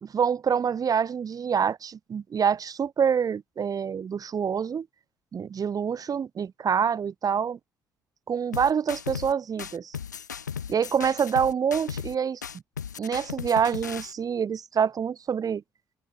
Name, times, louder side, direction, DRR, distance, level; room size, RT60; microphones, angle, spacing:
voice 1, 0.0-4.9 5.3-7.6 8.3-10.0 10.7-12.4 13.0-15.6, right 7 dB, 40° right, 1.8 m, -26 dB
sound 1, 8.5-9.3 9.6-12.1 12.4-14.1, left 7 dB, 85° left, 7.1 m, -36 dB
open air
figure-of-eight pair, 50°, 9 cm